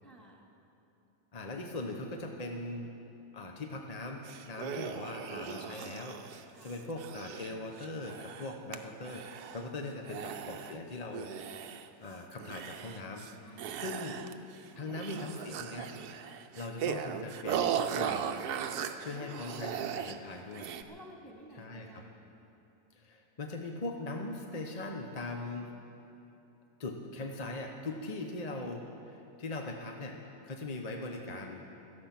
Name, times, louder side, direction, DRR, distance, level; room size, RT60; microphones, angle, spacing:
voice 1, 0.0-0.5 6.5-6.8 13.4-15.0 19.1-19.8 20.9-22.1, equal, ahead, -1 dB, 2.1 m, -53 dB
voice 2, 1.3-2.9 3.3-11.3 12.0-14.2 14.8-15.9 16.2-18.2 19.0-20.7 21.6-22.0 22.9-25.7 26.8-30.2 30.4-31.6, left 2 dB, 35° left, 2 dB, 0.7 m, -40 dB
sound 1, 4.2-8.8 9.0-9.7 10.1-10.8 11.1-12.0 12.4-13.3 13.6-14.6 14.9-20.2 20.5-20.8, right 8 dB, 70° right, 1.2 m, -38 dB
17.5 x 13.5 x 5.9 m, 2.9 s
omnidirectional pair, 1.8 m